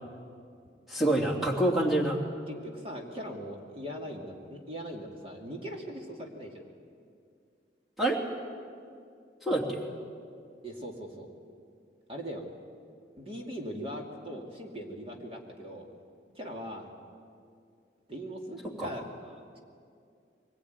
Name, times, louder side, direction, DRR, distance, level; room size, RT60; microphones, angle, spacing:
voice 1, 0.9-2.2 8.0-8.2 9.4-9.8 18.8-18.9, right 1 dB, ahead, -3 dB, 2.9 m, -26 dB
voice 2, 2.5-6.5 10.6-11.3 12.1-12.4 13.2-15.8 16.3-16.9 18.1-19.0 19.5-19.6, equal, 30° right, 0 dB, 2.6 m, -40 dB
23.5 x 20.5 x 9.4 m, 2.3 s
head